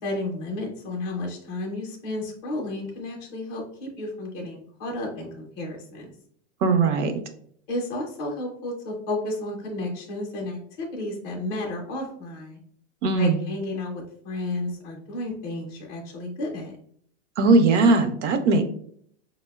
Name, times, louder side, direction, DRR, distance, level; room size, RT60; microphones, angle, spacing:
voice 1, 0.0-6.0 7.7-12.6 13.1-16.7, left 2 dB, 20° left, -1 dB, 0.5 m, -32 dB
voice 2, 6.6-7.1 13.0-13.4 17.4-18.6, right 3 dB, 70° right, 7 dB, 0.6 m, -19 dB
4.4 x 2.0 x 2.2 m, 0.63 s
supercardioid pair, 160°, 37 cm